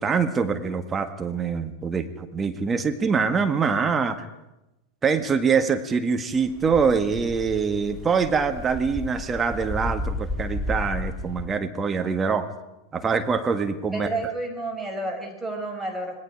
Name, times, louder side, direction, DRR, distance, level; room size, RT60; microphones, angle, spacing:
voice 1, 0.0-4.3 5.0-12.5 12.9-14.1, right 5 dB, 20° right, 8 dB, 1.7 m, -24 dB
sound 1, 6.4-11.5, left 2 dB, 20° left, 1.7 m, -33 dB
voice 2, 13.9-16.2, right 2 dB, 5° right, 1 dB, 5.7 m, -30 dB
26.5 x 20.5 x 4.9 m, 0.96 s
figure-of-eight pair, 90°, 0 cm